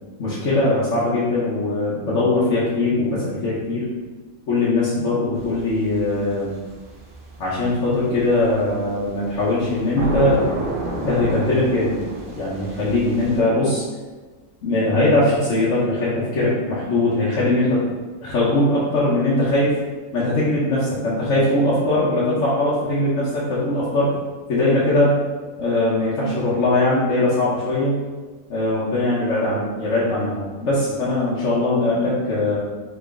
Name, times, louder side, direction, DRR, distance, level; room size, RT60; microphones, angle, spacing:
voice 1, 0.2-3.8 4.5-6.5 7.4-10.4 11.0-12.0 12.4-13.8 14.6-17.8 18.2-19.7 20.1-24.1 24.5-25.2 25.6-28.0 28.5-32.6, left 2 dB, 65° left, -9 dB, 1.1 m, -20 dB
sound 1, 5.3-13.4, right 1 dB, 55° right, 0.7 m, -31 dB
3.0 x 3.0 x 3.6 m, 1.3 s
omnidirectional pair, 1.4 m